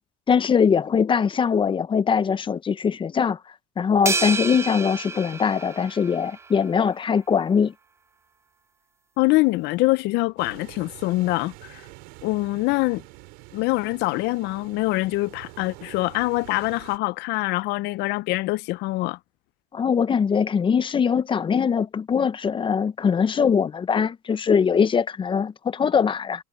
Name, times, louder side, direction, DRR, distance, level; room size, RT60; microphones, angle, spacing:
voice 1, 0.3-3.4 3.8-7.7 19.7-26.4, left 6 dB, 30° left, 0.7 m, -22 dB
sound 1, 4.1-6.5, right 4 dB, 15° right, 0.5 m, -29 dB
voice 2, 9.2-11.8 12.2-13.0 13.5-19.2, left 21 dB, 70° left, 0.6 m, -24 dB
sound 2, 10.4-17.0, right 25 dB, 85° right, 3.3 m, -46 dB
supercardioid pair, 110°, 18 cm